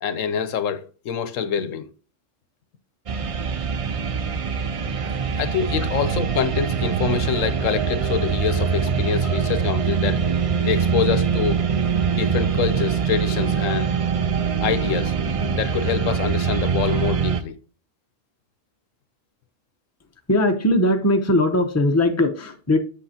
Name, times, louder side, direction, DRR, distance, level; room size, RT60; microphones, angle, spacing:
voice 1, 0.0-1.9 5.0-10.3 10.6-11.6 12.1-13.9 14.6-15.1 15.5-17.6, left 8 dB, 85° left, 1.1 m, -26 dB
sound 1, 3.1-17.4, right 6 dB, 55° right, 0.3 m, -23 dB
voice 2, 20.3-22.8, left 1 dB, 15° left, 0.7 m, -20 dB
7.7 x 6.8 x 2.8 m
omnidirectional pair, 1.3 m